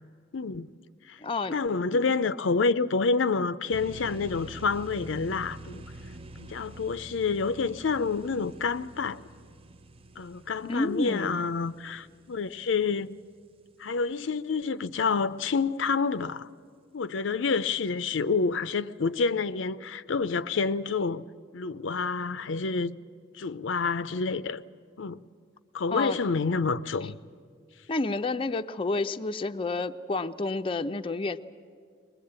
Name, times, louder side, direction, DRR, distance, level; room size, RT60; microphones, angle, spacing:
voice 1, 0.3-0.7 1.1-1.2 1.5-5.8 6.4-9.2 10.2-13.2 13.8-16.5 16.9-21.2 21.5-23.0 23.4-24.6 25.0-25.2 25.7-27.2, left 4 dB, 70° left, 0.5 m, -28 dB
voice 2, 1.2-1.6 10.7-11.4 25.9-26.2 27.9-31.4, left 3 dB, 30° left, 0.5 m, -29 dB
sound 1, 3.7-13.2, right 2 dB, 30° right, 0.6 m, -46 dB
22.5 x 20.5 x 8.8 m
head